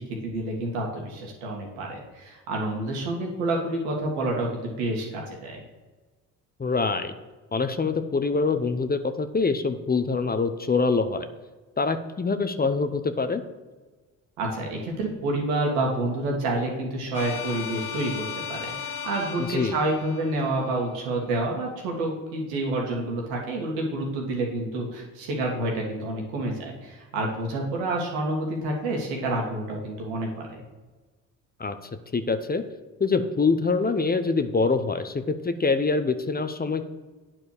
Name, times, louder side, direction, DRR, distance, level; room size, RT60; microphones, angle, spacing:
voice 1, 0.0-5.6 14.4-30.6, right 2 dB, 85° right, 0 dB, 2.0 m, -28 dB
voice 2, 6.6-7.1 7.5-11.3 11.8-13.4 19.4-19.8 31.6-31.8 32.1-32.6 33.0-36.8, left 4 dB, 20° left, 9 dB, 0.8 m, -25 dB
sound 1, 17.1-21.0, left 7 dB, 55° left, 1.4 m, -36 dB
8.7 x 4.6 x 6.6 m, 1.3 s
hypercardioid pair, 55°, 41 cm